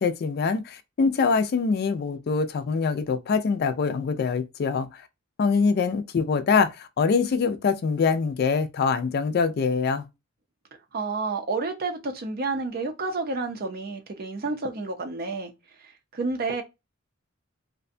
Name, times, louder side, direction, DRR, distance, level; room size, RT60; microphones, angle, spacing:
voice 1, 0.0-5.0 5.4-10.0, left 5 dB, 50° left, 0.3 m, -24 dB
voice 2, 10.9-15.5 15.8-16.6, right 3 dB, 50° right, 0.5 m, -30 dB
2.5 x 2.1 x 2.5 m
head